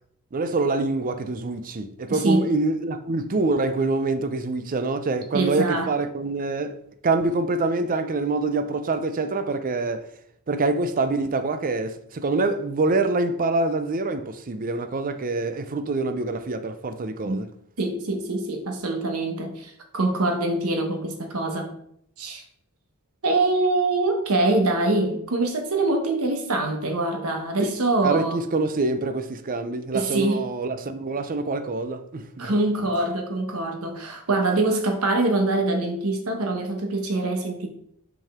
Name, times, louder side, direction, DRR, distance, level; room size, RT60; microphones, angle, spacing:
voice 1, 0.3-10.1 10.5-17.5 27.6-27.7 28.0-32.5, right 3 dB, 40° right, 0.5 m, -25 dB
voice 2, 2.1-2.5 5.3-5.9 17.2-17.4 17.8-21.7 22.2-22.4 23.2-28.4 29.9-30.4 32.4-37.7, right 2 dB, 75° right, 1.1 m, -24 dB
5.4 x 5.3 x 3.6 m
head